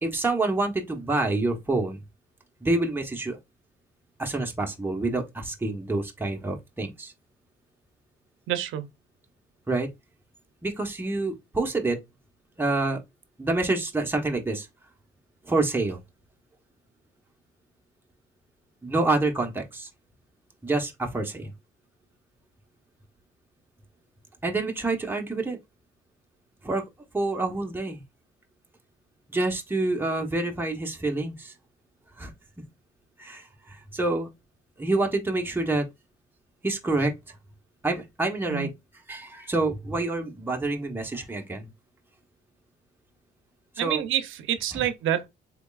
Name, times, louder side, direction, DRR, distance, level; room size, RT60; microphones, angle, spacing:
voice 1, 0.0-2.0 2.6-3.4 4.2-7.1 9.7-9.9 10.6-12.0 12.6-13.0 13.4-14.7 15.5-16.0 18.8-19.9 20.6-21.5 24.4-25.6 26.6-26.8 27.1-28.0 29.3-31.5 32.2-32.3 33.2-34.3 34.8-35.8 36.6-37.4 37.8-38.7 39.1-41.7 43.8-44.0 44.7-44.8, right 2 dB, 10° right, 0.9 m, -27 dB
voice 2, 8.5-8.8 38.5-38.7 43.8-45.3, right 11 dB, 80° right, 0.7 m, -27 dB
3.6 x 3.5 x 2.3 m
cardioid pair, 90°, 20 cm